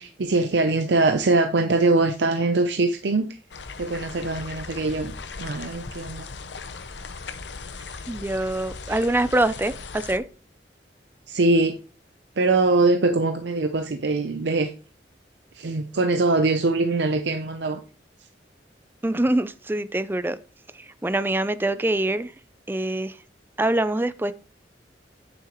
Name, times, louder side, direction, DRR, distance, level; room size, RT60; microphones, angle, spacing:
voice 1, 0.0-3.4 3.8-5.1 5.4-6.3 8.9-9.0 11.3-11.8 12.4-14.7 15.5-17.8, right 3 dB, 80° right, 7 dB, 0.6 m, -22 dB
sound 1, 3.5-10.2, left 4 dB, 90° left, 0.7 m, -38 dB
voice 2, 8.1-10.2 19.0-20.4 20.8-22.3 22.7-23.2 23.6-24.3, right 1 dB, 10° right, 14 dB, 0.4 m, -24 dB
8.8 x 7.2 x 3.0 m, 0.35 s
head